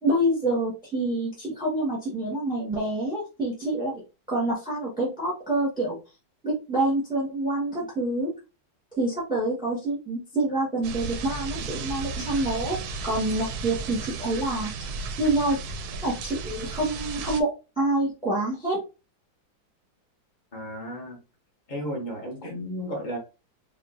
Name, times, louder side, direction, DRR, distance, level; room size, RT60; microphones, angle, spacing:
voice 1, 0.0-4.0 4.3-6.0 6.4-8.3 8.9-12.8 13.0-14.7 15.2-15.6 16.0-17.5 17.8-18.8, right 1 dB, 5° right, 1.2 m, -27 dB
sound 1, 10.8-17.4, right 4 dB, 70° right, 1.0 m, -34 dB
voice 2, 20.5-21.2 21.7-23.2, equal, 35° left, 0.9 m, -33 dB
5.0 x 2.5 x 2.6 m
omnidirectional pair, 2.0 m